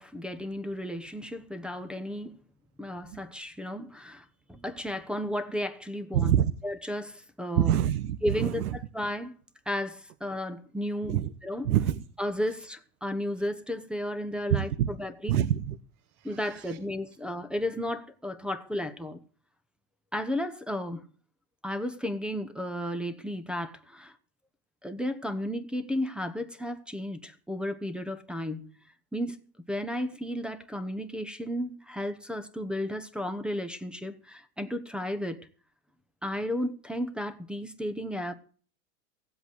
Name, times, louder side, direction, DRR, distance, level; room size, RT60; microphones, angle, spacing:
voice 1, 0.0-2.4 2.8-6.3 6.6-7.8 8.2-9.3 9.7-11.7 12.2-15.4 16.2-19.2 20.1-21.0 21.6-24.2 24.8-28.7 29.1-29.4 29.7-35.4 36.2-38.4, left 1 dB, ahead, 0.9 m, -33 dB
voice 2, 6.1-6.5 7.6-8.7 11.1-11.3 11.6-12.0 14.5-14.9 15.3-15.8 16.7-16.8, right 11 dB, 85° right, 1.1 m, -25 dB
16.5 x 7.9 x 8.0 m
supercardioid pair, 135°, 44 cm